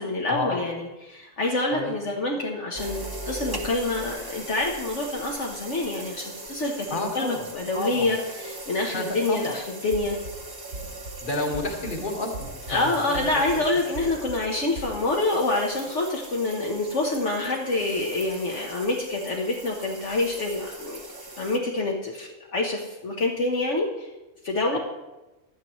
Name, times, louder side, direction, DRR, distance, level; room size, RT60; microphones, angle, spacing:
voice 1, 0.0-8.2 8.4-10.2 12.7-21.0 21.4-24.1 24.4-24.8, left 2 dB, 60° left, -1 dB, 1.4 m, -27 dB
sound 1, 2.7-21.6, right 2 dB, 20° right, 0.8 m, -40 dB
voice 2, 6.9-8.1 8.9-9.6 11.2-13.7 24.7-24.8, left 2 dB, 40° left, 1 dB, 1.8 m, -31 dB
sound 2, 9.9-10.3 10.7-11.1 11.5-12.0 12.3-12.8 13.1-13.6 13.9-14.4 14.7-14.9, right 2 dB, 80° right, 3.5 m, -37 dB
15.5 x 11.0 x 3.1 m, 1.1 s
omnidirectional pair, 1.4 m